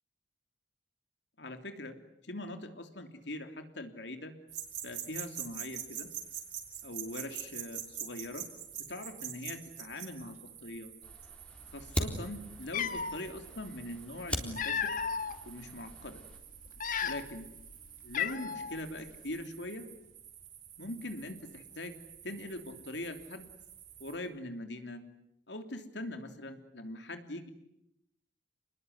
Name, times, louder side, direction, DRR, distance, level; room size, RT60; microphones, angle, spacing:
voice 1, 1.4-2.0 2.2-4.3 4.8-6.1 6.8-8.4 8.9-10.9 11.7-14.9 15.4-16.2 17.0-17.4 18.0-19.9 20.8-21.9 22.2-23.5 24.0-25.0 25.5-27.5, left 1 dB, 85° left, 7 dB, 3.2 m, -42 dB
sound 1, 4.5-24.2, right 9 dB, 45° right, 5.4 m, -47 dB
Fire, 11.0-16.4, equal, 5° left, 3.7 m, -41 dB
Cat, 12.2-12.3 12.7-13.2 14.2-15.3 15.9-16.1 16.7-17.5 17.7-17.8 18.1-18.8, left 7 dB, 50° left, 1.7 m, -34 dB
29.0 x 21.0 x 9.7 m, 0.82 s
head